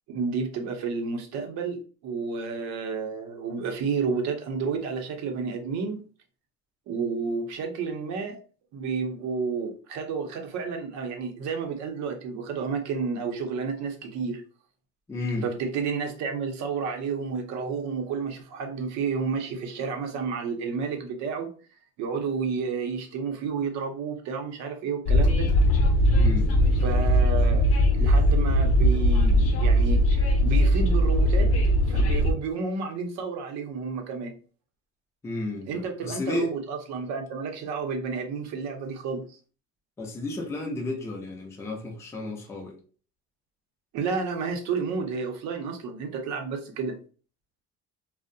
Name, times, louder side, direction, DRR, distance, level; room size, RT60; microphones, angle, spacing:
voice 1, 0.1-6.0 6.9-8.4 8.7-14.4 15.4-21.5 22.0-25.5 26.8-31.5 31.9-34.3 35.7-39.4 43.9-47.0, right 5 dB, 65° right, 0.7 m, -31 dB
voice 2, 15.1-15.5 26.1-26.5 35.2-36.5 40.0-42.8, left 2 dB, 10° left, 0.4 m, -32 dB
Train, 25.1-32.3, equal, 50° left, 0.7 m, -20 dB
2.5 x 2.0 x 2.5 m
cardioid pair, 150°, 30 cm